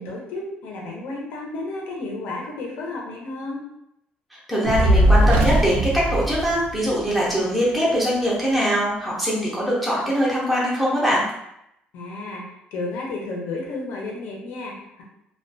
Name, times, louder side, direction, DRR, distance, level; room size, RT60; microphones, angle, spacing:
voice 1, 0.0-3.6 11.9-15.0, left 2 dB, 75° left, -2 dB, 0.7 m, -32 dB
voice 2, 4.3-11.2, equal, ahead, -7 dB, 0.5 m, -22 dB
Fire, 4.6-7.1, right 1 dB, 85° right, 0.4 m, -19 dB
2.3 x 2.2 x 2.6 m, 0.81 s
cardioid pair, 175°, 3 cm